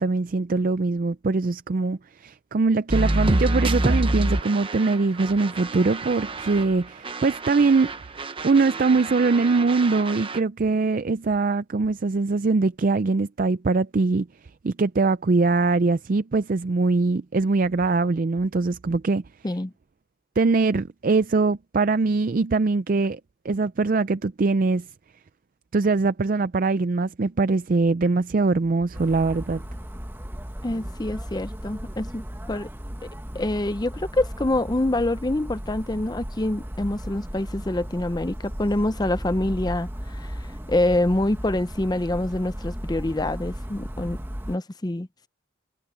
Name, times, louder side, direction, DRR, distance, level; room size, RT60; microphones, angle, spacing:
voice 1, 0.0-7.9 8.4-14.3 14.6-19.2 20.4-23.2 23.4-24.9 25.7-29.6, right 3 dB, 45° right, 0.4 m, -22 dB
sound 1, 2.9-6.8 7.0-10.4, right 2 dB, 25° right, 0.9 m, -27 dB
sound 2, 28.9-44.6, equal, 10° right, 1.2 m, -36 dB
voice 2, 30.6-32.7 33.3-40.4 40.7-44.2 44.5-45.3, left 1 dB, 20° left, 0.6 m, -26 dB
head